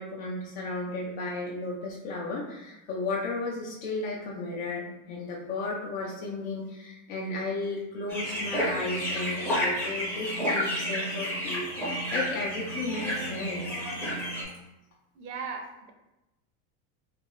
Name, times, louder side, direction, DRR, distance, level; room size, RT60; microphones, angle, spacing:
voice 1, 0.0-13.8, left 3 dB, 70° left, -3 dB, 0.6 m, -34 dB
sound 1, 8.1-14.4, equal, 5° left, 0.5 m, -31 dB
voice 2, 15.1-15.9, right 5 dB, 65° right, 3 dB, 0.6 m, -37 dB
2.5 x 2.3 x 3.0 m, 0.95 s
supercardioid pair, 150°, 42 cm